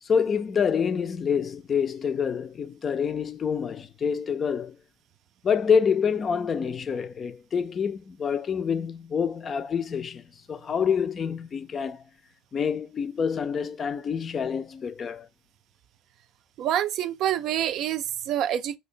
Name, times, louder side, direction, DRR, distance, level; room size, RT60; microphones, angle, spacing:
voice 1, 0.1-4.8 5.4-12.0 12.5-15.3, left 6 dB, 35° left, 0.4 m, -27 dB
voice 2, 16.6-18.8, right 11 dB, 55° right, 0.4 m, -27 dB
2.7 x 2.7 x 4.3 m
hypercardioid pair, 80°, 0 cm